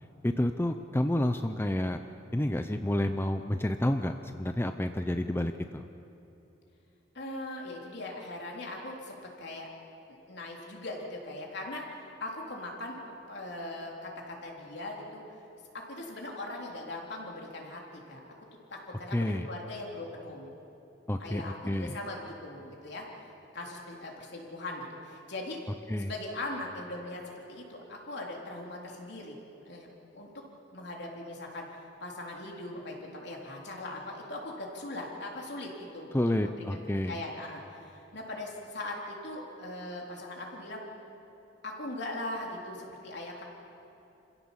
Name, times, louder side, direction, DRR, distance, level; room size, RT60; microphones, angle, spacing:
voice 1, 0.2-2.0 2.3-5.8 19.1-19.5 21.1-22.0 25.9-26.1 36.1-37.2, left 1 dB, 15° left, 7 dB, 0.6 m, -29 dB
voice 2, 7.1-9.7 10.3-15.2 15.9-18.2 18.7-20.5 21.2-23.0 23.5-25.6 26.0-27.2 27.5-29.4 29.7-29.9 30.1-30.4 30.7-31.7 32.0-36.8 37.1-40.8 41.6-43.4, left 1 dB, 65° left, -1 dB, 3.7 m, -40 dB
27.5 x 16.0 x 7.3 m, 3.0 s
head